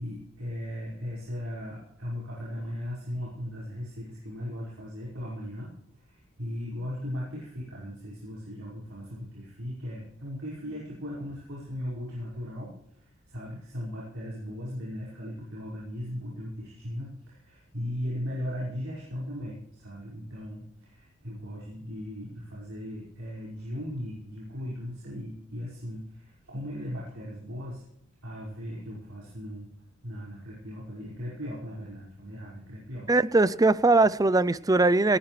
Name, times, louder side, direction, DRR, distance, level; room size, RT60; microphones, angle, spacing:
voice 1, 0.0-27.8 28.2-29.7 30.0-33.1, equal, 70° right, 5.4 m, -37 dB
voice 2, 33.1-35.2, right 2 dB, 15° right, 0.5 m, -21 dB
19.0 x 18.0 x 3.3 m
head